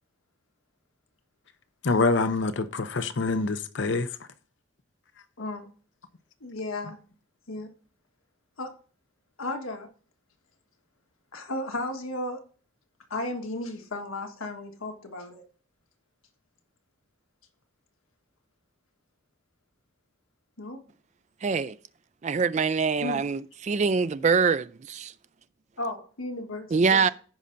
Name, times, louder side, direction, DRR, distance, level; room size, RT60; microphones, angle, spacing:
voice 1, 1.8-4.1, left 3 dB, 60° left, 0.6 m, -25 dB
voice 2, 5.4-5.7 6.4-7.0 7.5-7.7 8.6-8.7 9.4-9.9 11.3-12.4 13.1-15.4 20.6-20.8 23.0-23.3 25.8-27.1, left 2 dB, 85° left, 1.5 m, -34 dB
voice 3, 21.4-21.8 22.2-25.1 26.7-27.1, right 5 dB, 35° right, 0.3 m, -24 dB
15.0 x 5.5 x 2.6 m
head